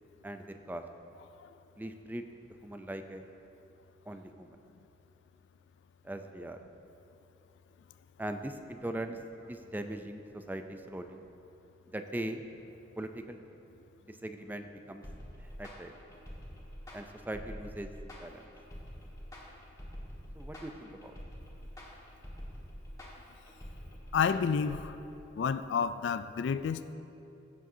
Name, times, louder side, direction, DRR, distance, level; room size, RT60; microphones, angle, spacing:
voice 1, 0.2-0.8 1.8-2.2 2.6-3.2 4.1-4.6 6.0-6.6 8.2-9.2 9.5-11.2 11.9-12.4 13.0-13.4 14.0-15.0 15.4-15.9 16.9-17.9 18.2-18.4 20.3-21.2, right 1 dB, 10° right, 7 dB, 0.4 m, -40 dB
sound 1, 15.0-24.8, equal, 20° left, 1.6 m, -46 dB
voice 2, 24.1-25.0 25.4-26.9, left 6 dB, 85° left, 13 dB, 0.3 m, -30 dB
16.0 x 7.4 x 2.7 m, 2.9 s
head